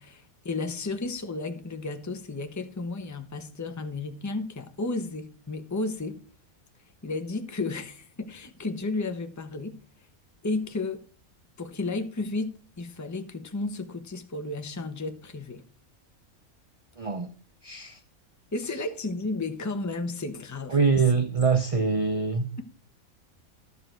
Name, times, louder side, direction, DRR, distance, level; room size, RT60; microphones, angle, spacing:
voice 1, 0.0-6.2 7.0-9.8 10.4-11.0 11.6-15.6 18.5-20.8, left 3 dB, 15° left, 1.0 m, -33 dB
voice 2, 17.0-17.3 17.6-18.0 20.7-22.5, right 4 dB, 30° right, 0.7 m, -24 dB
12.0 x 7.6 x 4.5 m
omnidirectional pair, 1.5 m